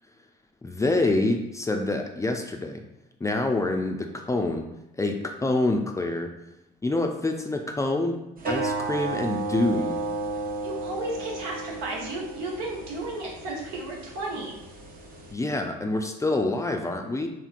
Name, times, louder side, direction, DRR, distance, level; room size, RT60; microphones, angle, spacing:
voice 1, 0.6-2.8 3.2-4.7 5.0-6.3 6.8-8.2 8.5-10.0 15.3-17.3, left 2 dB, 15° left, 3 dB, 0.4 m, -26 dB
sound 1, 8.4-15.3, right 3 dB, 45° right, 0.7 m, -33 dB
voice 2, 10.6-14.6, right 2 dB, 85° right, -3 dB, 0.9 m, -33 dB
3.0 x 2.8 x 2.4 m, 0.87 s
hypercardioid pair, 65°, 21 cm